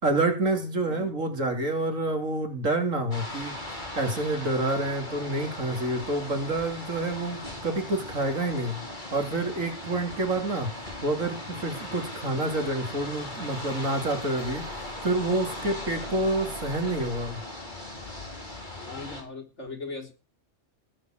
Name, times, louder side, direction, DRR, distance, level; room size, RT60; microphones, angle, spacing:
voice 1, 0.0-3.5 4.0-8.8 9.1-17.4, right 2 dB, 90° right, 5 dB, 3.6 m, -28 dB
sound 1, 3.1-19.2, left 1 dB, 35° left, 4.7 m, -38 dB
voice 2, 18.8-20.1, left 3 dB, 65° left, 3 dB, 4.3 m, -39 dB
18.5 x 7.3 x 8.0 m, 0.32 s
omnidirectional pair, 1.3 m